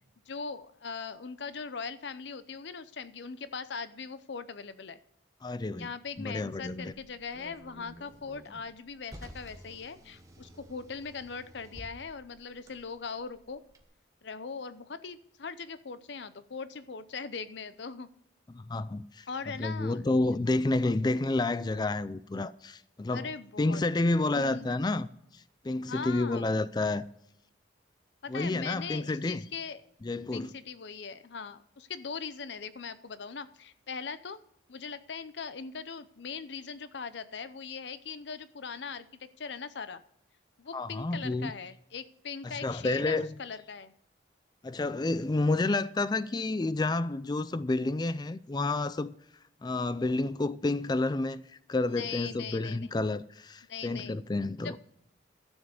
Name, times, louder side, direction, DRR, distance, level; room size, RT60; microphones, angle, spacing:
voice 1, 0.3-5.0 5.8-13.6 14.2-18.1 19.3-20.0 23.1-23.8 24.3-24.7 25.9-26.5 28.2-29.8 30.3-34.4 34.7-40.0 40.6-43.9 51.9-52.9 53.7-54.2 54.6-54.8, left 5 dB, 70° left, 0.6 m, -40 dB
voice 2, 5.4-5.9 6.2-6.9 18.5-19.3 19.6-23.3 23.6-25.1 25.3-27.1 28.3-29.5 30.0-30.5 40.7-41.5 42.4-43.3 44.6-49.1 49.6-54.8, left 2 dB, 20° left, 0.4 m, -30 dB
Car, 6.1-13.8, equal, 15° right, 1.2 m, -52 dB
12.5 x 7.2 x 6.6 m
head